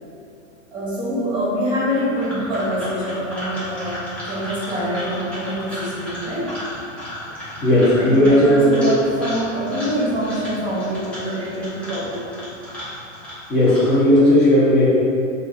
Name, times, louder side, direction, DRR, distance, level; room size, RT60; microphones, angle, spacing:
voice 1, 0.7-4.0 4.2-6.6 8.0-12.3, equal, 10° right, -8 dB, 1.2 m, -25 dB
sound 1, 1.9-14.2, equal, 5° left, 0.3 m, -34 dB
voice 2, 7.6-8.9 13.5-14.8, left 1 dB, 25° left, -9 dB, 1.3 m, -15 dB
3.0 x 2.5 x 4.0 m, 2.5 s
hypercardioid pair, 125°, 40 cm